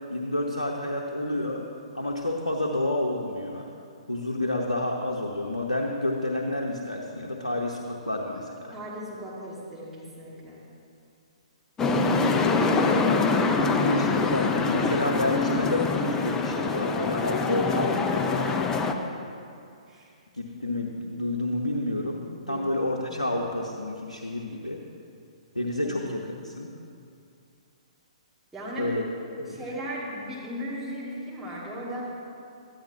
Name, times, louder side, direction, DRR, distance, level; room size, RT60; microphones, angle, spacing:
voice 1, 0.1-1.6 1.9-3.7 4.1-8.7 13.4-18.5 20.4-24.8 25.5-26.7 28.8-29.0 29.4-29.6, left 1 dB, 90° left, 0 dB, 0.8 m, -29 dB
voice 2, 8.7-10.6 18.8-19.1 19.9-20.1 22.4-22.7 23.1-23.5 25.8-26.0 28.5-28.9 29.5-32.0, equal, 5° right, -9 dB, 1.9 m, -37 dB
sound 1, 11.8-18.9, left 4 dB, 15° left, 0.5 m, -24 dB
13.0 x 10.5 x 2.7 m, 2.5 s
figure-of-eight pair, 120°, 4 cm